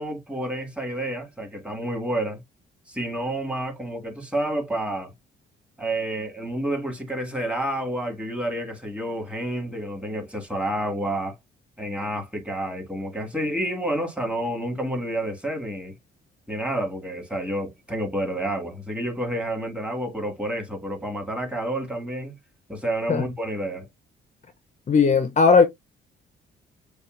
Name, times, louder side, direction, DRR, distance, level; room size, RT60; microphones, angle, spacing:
voice 1, 0.0-2.4 2.9-5.1 5.8-11.4 11.8-15.9 16.5-22.4 22.7-23.9, right 1 dB, 5° right, 2.0 m, -29 dB
voice 2, 24.9-25.6, left 5 dB, 40° left, 0.7 m, -17 dB
6.8 x 2.4 x 2.5 m
cardioid pair, 90°, 20 cm